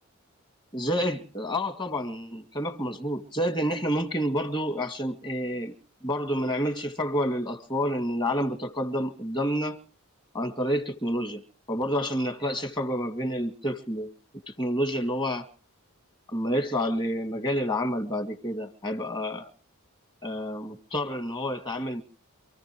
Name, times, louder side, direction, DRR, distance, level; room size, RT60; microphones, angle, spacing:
voice 1, 0.7-5.7 6.0-9.8 10.3-14.1 14.5-15.5 16.3-19.5 20.2-22.0, equal, 20° left, 2.3 m, -29 dB
28.0 x 15.0 x 3.1 m
head